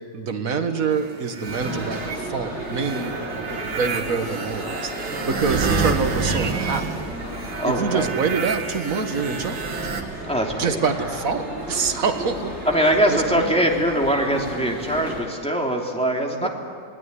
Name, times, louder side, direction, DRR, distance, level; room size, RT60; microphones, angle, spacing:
voice 1, 0.1-6.9 7.6-9.7 10.6-12.6 13.1-13.6 16.3-16.5, right 5 dB, 50° right, 7 dB, 1.8 m, -26 dB
sound 1, 0.9-2.2 2.7-10.0, right 5 dB, 85° right, 2.6 m, -29 dB
sound 2, 1.5-15.2, right 1 dB, 30° right, 7.9 m, -33 dB
voice 2, 7.6-8.1 10.2-10.8 12.6-16.5, right 1 dB, 5° left, -1 dB, 3.1 m, -22 dB
27.0 x 20.0 x 9.7 m, 2.1 s
omnidirectional pair, 2.0 m